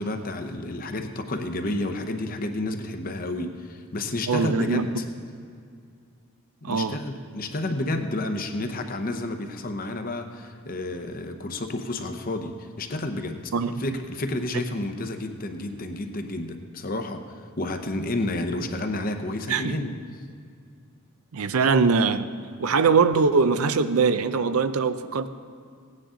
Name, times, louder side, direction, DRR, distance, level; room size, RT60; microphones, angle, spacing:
voice 1, 0.0-4.9 6.6-13.5 13.8-20.0, left 2 dB, 40° left, 6 dB, 0.8 m, -30 dB
voice 2, 4.3-4.8 6.6-7.0 13.5-13.7 19.5-19.8 21.3-22.3 22.6-25.3, right 5 dB, 80° right, 11 dB, 0.5 m, -22 dB
16.5 x 9.7 x 3.8 m, 2.3 s
head